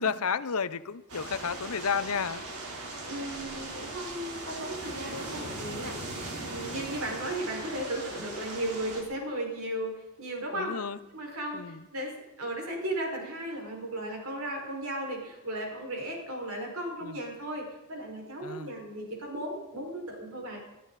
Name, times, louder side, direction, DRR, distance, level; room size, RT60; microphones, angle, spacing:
voice 1, 0.0-2.4 8.2-8.3 10.5-11.0 11.5-11.9 17.0-17.2 18.4-18.7, left 6 dB, 75° left, 15 dB, 0.7 m, -32 dB
sound 1, 1.1-9.0, right 2 dB, 90° right, 3.8 m, -39 dB
voice 2, 3.1-6.0 6.4-10.7 11.1-12.1 12.4-20.6, right 1 dB, 70° right, 0 dB, 5.5 m, -35 dB
21.5 x 12.5 x 4.2 m, 1.0 s
head